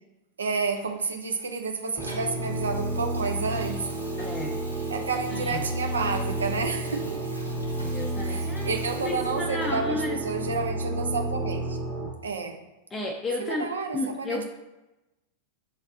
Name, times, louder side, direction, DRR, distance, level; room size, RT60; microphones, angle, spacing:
voice 1, 0.4-3.9 4.9-7.2 8.2-11.8 12.2-12.6 13.4-14.4, right 4 dB, 70° right, 4 dB, 0.4 m, -30 dB
Water tap faucet / Sink (filling or washing), 0.8-10.0 10.5-10.7, right 1 dB, 90° left, 0.8 m, -47 dB
sound 1, 2.0-12.1, right 1 dB, 10° right, 0.8 m, -31 dB
voice 2, 4.2-4.6 5.3-5.7 7.8-10.2 12.9-13.7 13.9-14.4, left 2 dB, 20° left, 1 dB, 0.4 m, -33 dB
5.5 x 3.2 x 2.5 m, 1.0 s
figure-of-eight pair, 90°, 0 cm